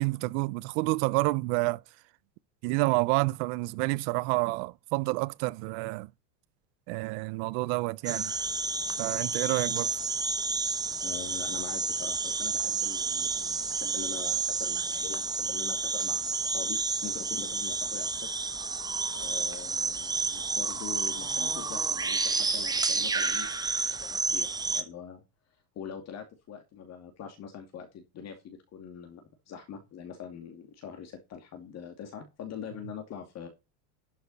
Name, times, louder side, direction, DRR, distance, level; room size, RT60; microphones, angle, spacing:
voice 1, 0.0-1.8 2.6-6.1 6.9-8.3 9.0-10.0, right 23 dB, 50° right, 0.6 m, -29 dB
sound 1, 8.1-24.8, right 4 dB, 10° right, 1.1 m, -30 dB
voice 2, 11.0-18.3 19.1-23.6 24.0-25.2 25.8-33.5, left 7 dB, 30° left, 2.4 m, -43 dB
12.0 x 6.6 x 4.1 m
supercardioid pair, 145°, 48 cm